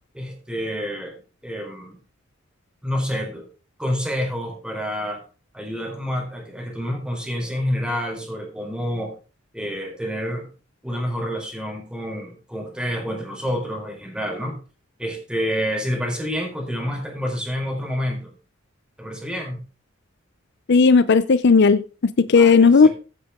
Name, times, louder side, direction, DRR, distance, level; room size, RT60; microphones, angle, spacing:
voice 1, 0.1-2.0 2.8-3.5 3.8-5.2 5.5-9.1 9.5-10.5 10.8-14.6 15.0-18.3 19.0-19.6 22.3-22.9, equal, 5° right, 4.2 m, -28 dB
voice 2, 20.7-22.9, left 4 dB, 60° left, 0.6 m, -14 dB
15.5 x 8.3 x 3.7 m
head